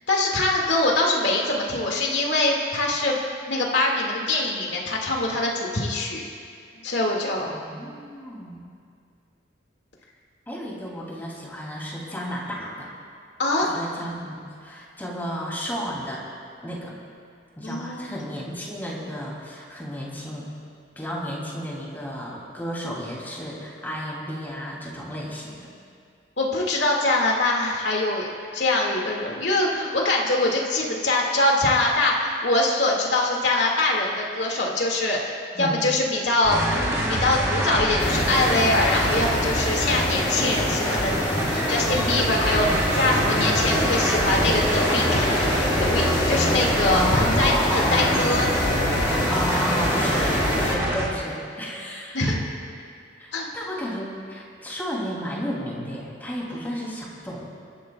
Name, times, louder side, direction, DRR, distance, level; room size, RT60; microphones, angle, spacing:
voice 1, 0.1-3.2 3.5-6.3 6.8-7.5 13.4-13.7 17.6-18.2 26.4-28.3 28.5-41.1 41.5-45.3 45.8-48.9 52.1-52.4 53.3-53.5, left 2 dB, 70° left, -1 dB, 2.1 m, -23 dB
voice 2, 7.4-8.7 10.5-12.9 13.6-16.2 16.6-17.0 17.6-20.5 21.0-25.7 35.5-35.8 46.9-48.3 49.3-52.4 53.2-57.4, equal, 10° left, -4 dB, 2.8 m, -32 dB
sound 1, 36.4-51.0, equal, 15° right, 3.1 m, -25 dB
sound 2, 38.0-50.8, left 1 dB, 30° left, 2.0 m, -26 dB
27.5 x 13.5 x 2.4 m, 2.3 s
head